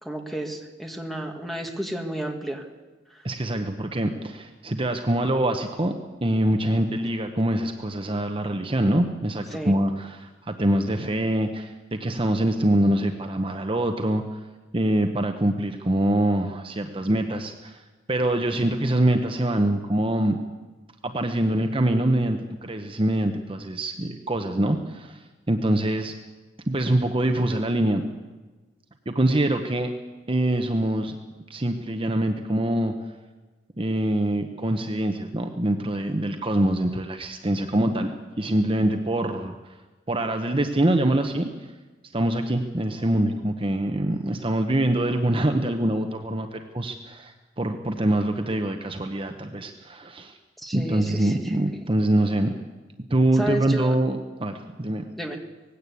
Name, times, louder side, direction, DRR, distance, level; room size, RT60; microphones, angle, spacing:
voice 1, 0.0-2.7 3.1-3.2 9.5-9.7 50.6-51.6 53.3-53.9 55.2-55.4, right 1 dB, ahead, 3 dB, 1.9 m, -32 dB
voice 2, 3.2-5.9 6.2-14.4 14.7-17.8 18.1-20.4 21.0-25.2 25.5-26.1 26.7-28.0 29.1-29.9 30.3-31.1 31.5-32.9 33.8-38.1 38.4-39.7 40.1-41.5 42.1-50.3 50.7-52.5 53.1-55.1, right 1 dB, 30° right, 5 dB, 0.9 m, -24 dB
19.0 x 16.5 x 8.4 m, 1.3 s
head